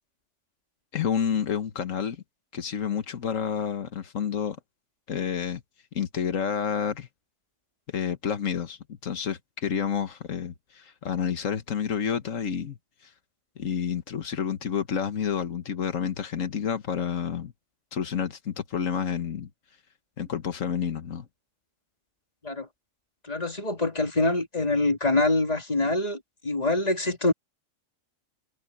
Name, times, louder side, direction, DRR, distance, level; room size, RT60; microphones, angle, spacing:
voice 1, 0.9-2.2 2.5-4.6 5.1-5.6 5.9-7.1 7.9-12.8 13.0-13.1 13.6-17.5 17.9-19.5 20.2-21.3, left 7 dB, 90° left, 1.6 m, -29 dB
voice 2, 23.2-27.3, left 2 dB, 30° left, 3.0 m, -25 dB
omnidirectional pair, 1.3 m